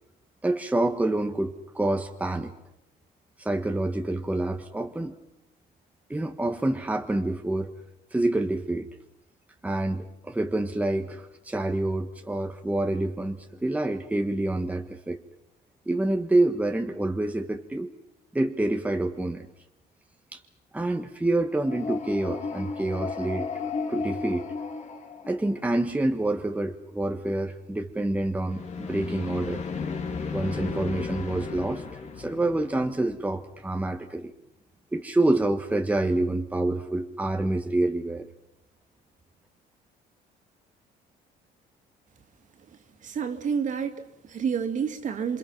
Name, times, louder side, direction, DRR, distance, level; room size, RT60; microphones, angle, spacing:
voice 1, 0.4-2.5 3.4-5.1 6.1-7.7 8.1-8.9 9.6-15.2 15.9-17.9 18.3-19.5 20.3-20.4 20.7-23.5 23.9-24.5 25.2-29.6 30.3-31.8 32.2-34.3 34.9-38.3, right 2 dB, 10° right, 5 dB, 1.5 m, -27 dB
sound 1, 21.5-25.8 28.4-33.4, left 5 dB, 40° left, 3.0 m, -34 dB
voice 2, 43.0-45.4, right 6 dB, 50° right, 6 dB, 2.8 m, -29 dB
27.5 x 26.0 x 6.0 m, 0.84 s
cardioid pair, 110°, 17 cm